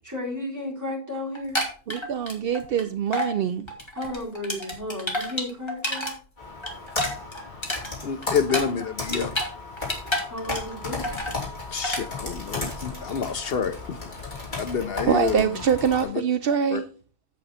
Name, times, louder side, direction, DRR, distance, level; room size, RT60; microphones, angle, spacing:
voice 1, 0.0-1.6 3.9-6.1 10.3-11.1, left 1 dB, 15° right, 3.8 m, -33 dB
sound 1, 1.4-2.8 3.1-3.3 3.7-6.1 6.4-9.5 9.8-10.8 11.0-11.4 11.8-12.0, left 1 dB, 25° left, 2.2 m, -29 dB
voice 2, 1.9-3.7 15.1-16.8, right 7 dB, 70° right, 0.8 m, -24 dB
Computer keyboard, 6.4-16.0, left 3 dB, 50° left, 3.4 m, -35 dB
voice 3, 8.0-9.3 11.7-14.1 14.6-15.6 16.0-16.2 16.7-16.8, left 6 dB, 65° left, 1.0 m, -28 dB
8.5 x 7.9 x 4.2 m
omnidirectional pair, 1.1 m